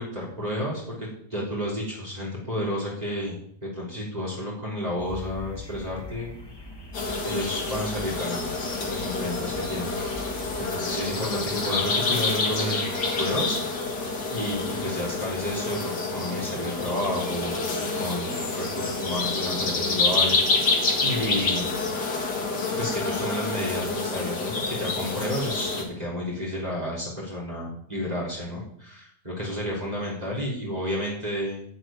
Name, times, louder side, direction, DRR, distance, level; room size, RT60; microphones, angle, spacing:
voice 1, 0.0-3.4 3.6-6.3 7.2-8.5 8.8-10.0 10.3-13.6 14.3-21.8 22.7-31.6, left 1 dB, 20° right, -4 dB, 3.5 m, -31 dB
sound 1, 5.0-10.7, left 1 dB, 15° left, 1.6 m, -42 dB
sound 2, 6.9-25.8, left 3 dB, 70° left, 2.7 m, -28 dB
10.5 x 6.7 x 9.0 m, 0.65 s
omnidirectional pair, 1.8 m